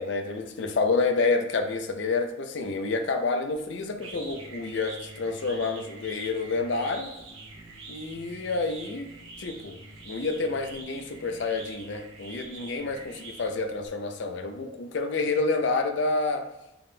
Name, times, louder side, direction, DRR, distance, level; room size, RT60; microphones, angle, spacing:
voice 1, 0.0-7.1 7.9-9.1 9.4-9.8 10.0-16.5, left 3 dB, 55° left, 6 dB, 0.4 m, -28 dB
sound 1, 3.5-13.9, right 3 dB, 75° right, 0.9 m, -45 dB
3.9 x 3.4 x 2.2 m, 0.93 s
head